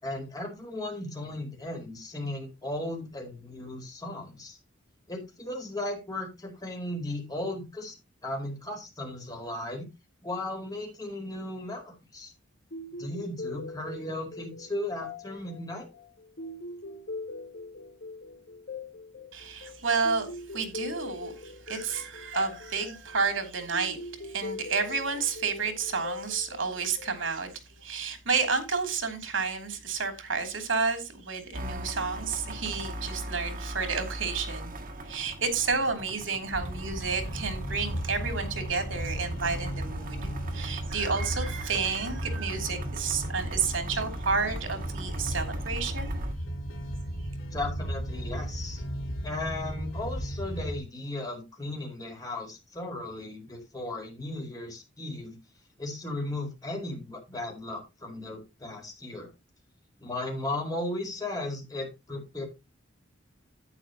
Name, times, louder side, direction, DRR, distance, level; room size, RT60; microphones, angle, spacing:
voice 1, 0.0-4.6 5.1-8.0 8.2-9.9 10.2-12.3 13.0-15.9 47.5-48.8 49.2-55.4 55.8-59.3 60.0-62.4, left 1 dB, 20° left, 4.7 m, -36 dB
sound 1, 12.7-27.5, left 2 dB, 60° left, 2.0 m, -42 dB
voice 2, 19.3-20.3 20.5-27.5 27.8-34.7 35.1-46.1, right 5 dB, 75° right, 2.9 m, -31 dB
sound 2, 31.5-46.3, right 1 dB, 45° right, 1.7 m, -40 dB
sound 3, 36.5-50.8, equal, 75° left, 3.1 m, -35 dB
11.5 x 9.2 x 2.9 m
head